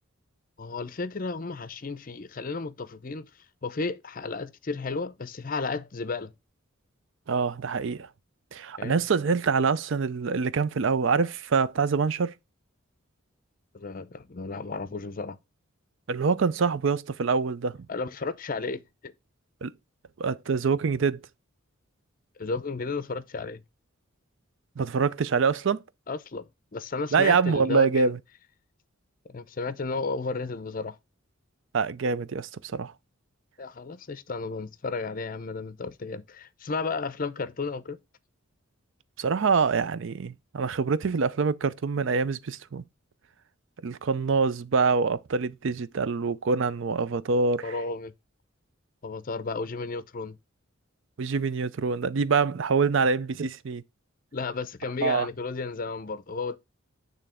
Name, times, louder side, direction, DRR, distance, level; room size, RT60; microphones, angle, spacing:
voice 1, 0.6-3.3 3.6-6.3 8.8-8.9 13.7-15.4 17.9-19.1 22.4-23.6 26.1-28.1 29.3-31.0 33.6-38.0 47.6-48.1 49.0-50.4 54.3-56.6, left 4 dB, 40° left, 0.5 m, -33 dB
voice 2, 7.3-8.1 8.5-12.3 16.1-17.8 19.6-19.7 20.2-21.2 24.8-25.8 27.1-28.2 31.7-32.9 39.2-42.8 43.8-47.7 51.2-53.8 55.0-55.3, right 5 dB, 60° right, 0.4 m, -25 dB
9.0 x 3.3 x 4.8 m
head